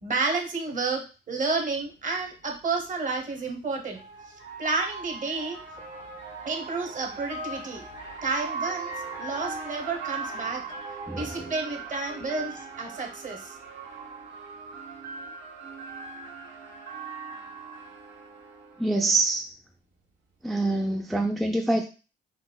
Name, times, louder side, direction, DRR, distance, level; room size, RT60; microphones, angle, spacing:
voice 1, 0.0-4.0 4.6-5.6 6.4-7.8 8.2-8.9 9.2-10.6 11.1-13.5, right 3 dB, 40° right, 3 dB, 1.0 m, -30 dB
sound 1, 1.8-1.9 3.3-18.9, right 4 dB, 70° right, 1.2 m, -39 dB
voice 2, 11.1-11.5 18.8-19.5 20.4-21.9, right 2 dB, ahead, 2 dB, 0.3 m, -25 dB
4.1 x 2.4 x 2.3 m, 0.33 s
cardioid pair, 90°, 20 cm